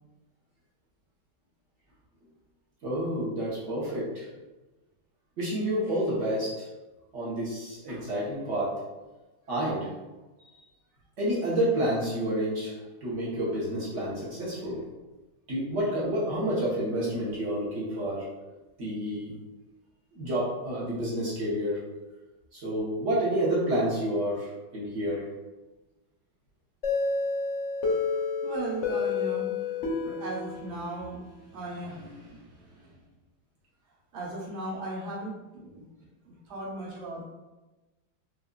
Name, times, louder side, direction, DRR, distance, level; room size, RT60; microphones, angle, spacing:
voice 1, 2.8-4.3 5.4-6.7 7.1-8.7 9.5-9.9 11.2-14.8 15.5-18.2 18.8-19.3 20.1-21.8 22.5-25.2, right 1 dB, 50° right, -7 dB, 0.9 m, -29 dB
sound 1, 26.8-31.5, left 4 dB, 65° left, 0.7 m, -30 dB
voice 2, 28.1-33.0 34.1-35.8 36.2-37.2, right 2 dB, 80° right, -7 dB, 1.9 m, -38 dB
5.0 x 2.2 x 2.2 m, 1.1 s
omnidirectional pair, 2.2 m